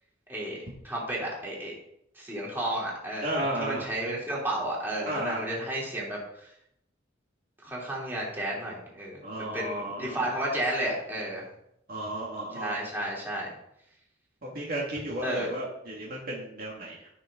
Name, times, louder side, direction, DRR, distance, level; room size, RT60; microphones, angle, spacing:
voice 1, 0.3-1.7 2.2-6.5 7.6-11.4 12.5-13.5 15.2-15.5, right 1 dB, 10° right, -5 dB, 3.4 m, -32 dB
voice 2, 3.2-3.9 5.1-5.5 9.2-10.3 11.9-12.8 14.4-17.1, right 1 dB, 50° right, -3 dB, 2.1 m, -33 dB
14.5 x 6.4 x 3.8 m, 0.78 s
head